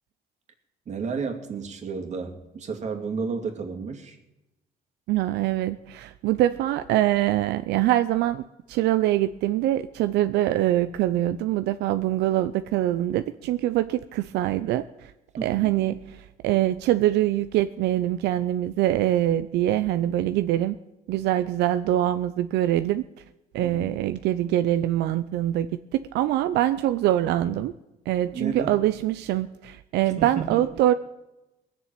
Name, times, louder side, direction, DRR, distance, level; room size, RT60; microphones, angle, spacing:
voice 1, 0.9-4.2 15.4-15.8 23.6-23.9 28.3-28.8 30.2-30.6, right 5 dB, 45° right, 5 dB, 2.5 m, -32 dB
voice 2, 5.1-15.1 15.4-20.8 21.1-23.0 23.5-27.7 28.1-30.9, right 13 dB, 80° right, 11 dB, 0.6 m, -24 dB
19.5 x 7.0 x 8.9 m, 0.98 s
cardioid pair, 110°, 17 cm